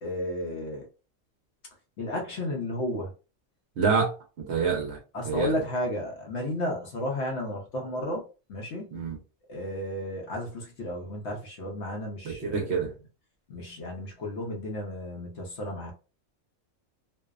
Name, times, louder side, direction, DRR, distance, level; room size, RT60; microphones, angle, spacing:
voice 1, 0.0-0.9 2.0-3.1 5.1-8.2 8.5-8.9 9.5-12.7 13.5-15.9, left 1 dB, 60° left, 0.9 m, -33 dB
voice 2, 3.8-4.1 4.5-5.0 5.3-5.6 8.9-9.2 12.2-12.9, right 5 dB, 60° right, 0.8 m, -26 dB
2.6 x 2.0 x 2.3 m
omnidirectional pair, 1.4 m